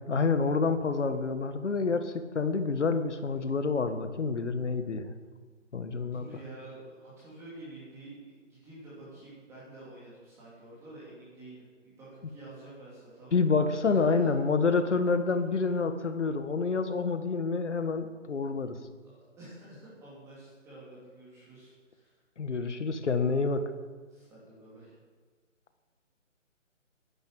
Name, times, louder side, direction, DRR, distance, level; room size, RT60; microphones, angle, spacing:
voice 1, 0.1-5.0 5.7-6.3 13.3-18.8 22.4-23.6, left 4 dB, 65° left, 10 dB, 1.6 m, -28 dB
voice 2, 6.1-13.4 14.0-14.3 18.8-22.2 24.1-25.0, right 2 dB, 5° right, -8 dB, 2.8 m, -49 dB
11.5 x 10.5 x 7.8 m, 1.5 s
hypercardioid pair, 165°, 38 cm